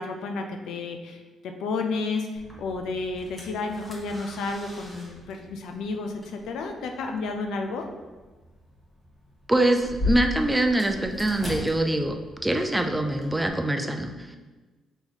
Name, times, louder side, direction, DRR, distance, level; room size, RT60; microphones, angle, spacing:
voice 1, 0.0-7.9, left 3 dB, 80° left, 4 dB, 0.5 m, -31 dB
sound 1, 2.3-13.5, left 1 dB, 15° left, 1.1 m, -38 dB
voice 2, 9.5-12.2 12.4-14.4, right 1 dB, 10° right, 5 dB, 0.4 m, -24 dB
3.9 x 2.9 x 4.0 m, 1.2 s
cardioid pair, 90°, 0 cm